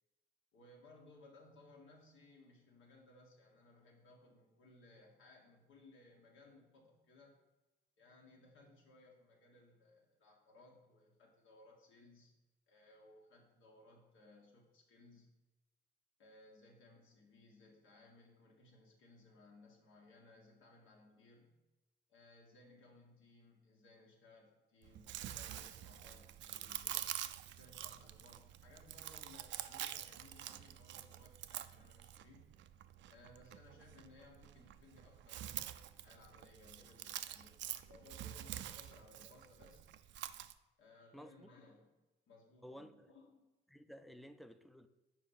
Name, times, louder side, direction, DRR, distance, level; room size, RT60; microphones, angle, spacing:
voice 1, 0.5-7.4 8.0-12.3 12.7-15.4 16.2-21.6 22.1-27.1 27.5-32.5 33.1-37.6 37.8-39.9 40.8-41.9 42.3-43.5, left 2 dB, 80° left, 1.7 m, -62 dB
Chewing mastication, 24.8-40.5, right 12 dB, 70° right, 0.4 m, -47 dB
voice 2, 41.1-41.5 42.6-43.1 43.7-44.9, equal, ahead, 0.4 m, -54 dB
5.1 x 4.7 x 5.6 m
cardioid pair, 90°, 20 cm